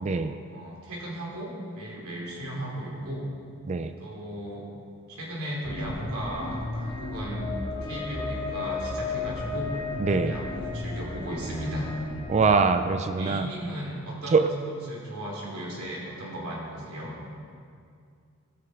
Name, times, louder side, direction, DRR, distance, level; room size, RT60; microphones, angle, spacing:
voice 1, 0.5-3.3 4.0-4.7 5.1-7.5 7.8-9.7 10.3-11.9 13.1-17.1, right 1 dB, 70° right, -4 dB, 3.1 m, -36 dB
sound 1, 5.6-12.5, left 3 dB, 20° left, 1.9 m, -33 dB
voice 2, 10.0-10.3 12.3-13.5 14.3-14.4, right 4 dB, 30° right, 9 dB, 0.4 m, -23 dB
15.5 x 7.0 x 4.8 m, 2.3 s
head